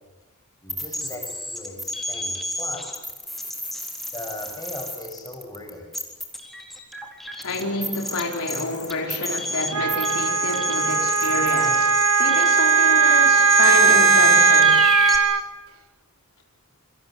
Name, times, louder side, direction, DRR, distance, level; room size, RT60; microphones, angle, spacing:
voice 1, 0.6-3.0 4.1-5.8, left 1 dB, 15° left, 7.5 m, -38 dB
sound 1, 0.7-15.2, left 1 dB, ahead, 3.8 m, -29 dB
voice 2, 7.4-14.8, left 2 dB, 85° left, 4.6 m, -28 dB
Wind instrument woodwind instrument, 9.7-15.4, right 5 dB, 75° right, 1.4 m, -18 dB
28.0 x 25.5 x 7.9 m
head